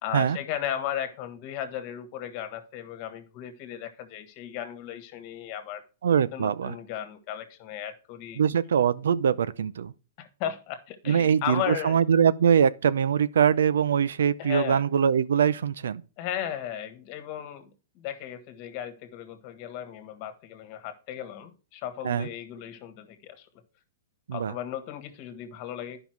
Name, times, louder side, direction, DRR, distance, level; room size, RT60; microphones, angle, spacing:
voice 1, 0.0-5.8 6.3-8.4 10.2-12.0 14.4-14.8 16.2-17.7 17.9-23.5 24.3-26.0, left 10 dB, 40° left, 1.5 m, -35 dB
voice 2, 6.0-6.8 8.4-9.9 11.1-16.0 22.0-22.3 24.3-24.5, right 7 dB, 85° right, 0.6 m, -23 dB
10.5 x 5.6 x 4.6 m
hypercardioid pair, 150°, 0 cm